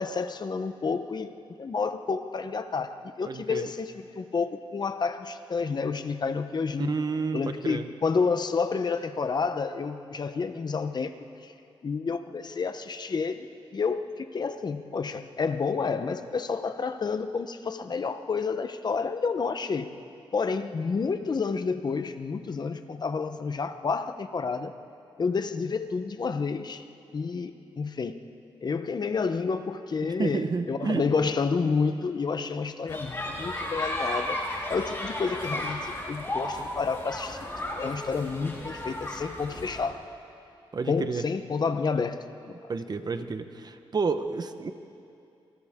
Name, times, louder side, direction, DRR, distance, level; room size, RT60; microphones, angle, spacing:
voice 1, 0.0-7.0 7.3-11.5 11.8-19.9 20.3-24.7 25.2-26.8 27.1-28.2 28.6-34.4 34.7-37.5 37.7-40.0 40.8-42.5, left 5 dB, 50° left, 9 dB, 0.9 m, -30 dB
voice 2, 3.3-3.7 6.8-7.9 30.2-31.0 40.7-41.2 42.7-44.7, right 4 dB, 45° right, 9 dB, 1.0 m, -30 dB
sound 1, 32.9-39.9, left 1 dB, 25° left, 4.0 m, -34 dB
28.0 x 27.0 x 3.7 m, 2.6 s
cardioid pair, 90°, 9 cm